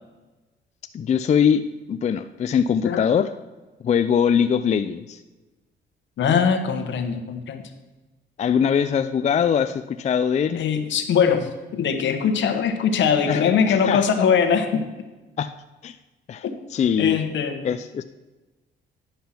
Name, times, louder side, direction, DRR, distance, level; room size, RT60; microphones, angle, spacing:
voice 1, 0.9-3.3 3.8-5.2 8.4-10.6 13.3-14.0 15.4-15.5 15.8-16.0 16.3-17.2 17.6-18.0, left 7 dB, 35° left, 10 dB, 0.4 m, -22 dB
voice 2, 6.2-7.6 10.5-14.8 17.0-17.7, left 7 dB, 70° left, 7 dB, 1.1 m, -21 dB
10.5 x 5.6 x 5.8 m, 1.2 s
cardioid pair, 90°, 20 cm